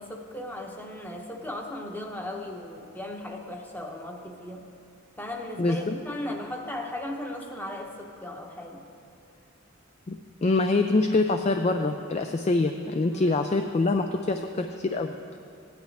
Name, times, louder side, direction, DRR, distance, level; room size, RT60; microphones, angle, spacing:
voice 1, 0.0-4.7 5.2-8.8 13.1-13.5, left 1 dB, 10° left, 1 dB, 0.9 m, -37 dB
voice 2, 5.6-5.9 10.1-15.4, left 3 dB, 30° left, 6 dB, 0.3 m, -25 dB
16.5 x 10.5 x 3.4 m, 2.4 s
head